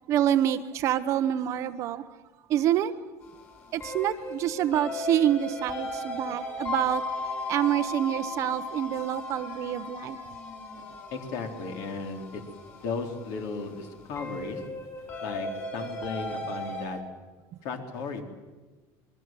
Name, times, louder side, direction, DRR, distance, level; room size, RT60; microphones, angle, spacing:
voice 1, 0.1-2.2 2.5-3.0 3.7-10.2, right 11 dB, 40° right, 1.0 m, -27 dB
sound 1, 3.2-16.9, left 2 dB, 25° left, 6.7 m, -36 dB
voice 2, 11.1-12.4 12.7-14.6 15.2-17.0 17.6-18.2, left 4 dB, 50° left, 4.0 m, -35 dB
26.5 x 23.0 x 7.7 m
cardioid pair, 175°, 8 cm